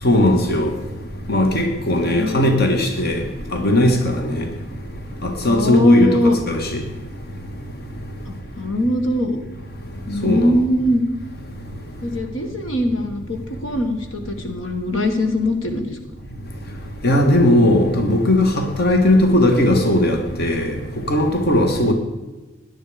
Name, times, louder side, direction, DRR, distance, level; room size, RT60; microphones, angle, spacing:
voice 1, 0.0-0.7 1.3-3.2 3.5-4.4 5.2-6.8 10.2-10.6 17.0-20.7 21.1-21.9, left 1 dB, 55° left, 1.8 m, -17 dB
voice 2, 2.0-2.5 5.4-6.4 8.2-9.4 10.1-11.0 12.0-16.0, left 1 dB, 75° left, 1.7 m, -21 dB
18.0 x 11.0 x 5.1 m
head